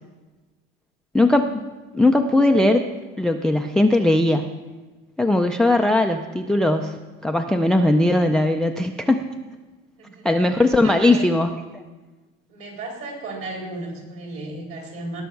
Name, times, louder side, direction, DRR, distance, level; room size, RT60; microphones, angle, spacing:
voice 1, 1.1-1.5 1.9-2.9 3.2-4.5 5.2-9.2 10.2-11.8, left 2 dB, ahead, 6 dB, 0.3 m, -19 dB
voice 2, 10.0-10.3 10.8-11.3 12.5-15.2, right 2 dB, 50° right, 0 dB, 4.3 m, -34 dB
18.5 x 6.3 x 5.8 m, 1.2 s
cardioid pair, 150°, 29 cm